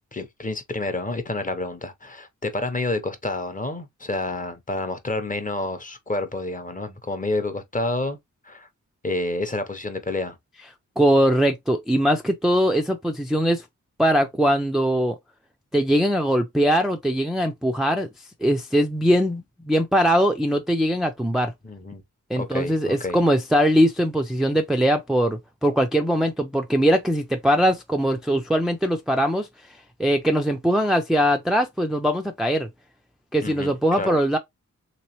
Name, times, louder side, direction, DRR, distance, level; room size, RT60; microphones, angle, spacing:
voice 1, 0.1-8.2 8.4-8.7 9.0-10.4 21.6-22.0 22.3-23.2 33.4-34.2, left 2 dB, 25° left, 0.7 m, -29 dB
voice 2, 11.0-13.6 14.0-15.2 15.7-18.1 18.4-21.5 22.3-29.5 30.0-32.7 33.3-34.4, equal, ahead, 0.4 m, -21 dB
3.3 x 3.0 x 2.8 m
wide cardioid pair, 105°, 32 cm